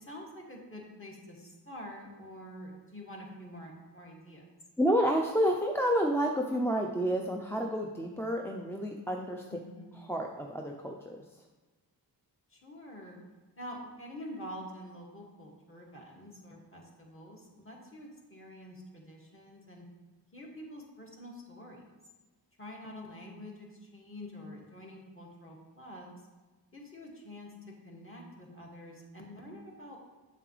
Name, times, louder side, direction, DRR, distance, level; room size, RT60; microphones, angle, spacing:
voice 1, 0.0-4.5 9.5-10.0 12.5-13.2 13.6-19.8 20.3-21.8 22.6-26.1 26.7-30.0, left 1 dB, 30° left, -2 dB, 2.2 m, -47 dB
voice 2, 4.8-9.4 10.0-11.2, equal, 5° left, 1 dB, 0.6 m, -29 dB
7.4 x 7.1 x 3.3 m, 1.3 s
cardioid pair, 50°, 44 cm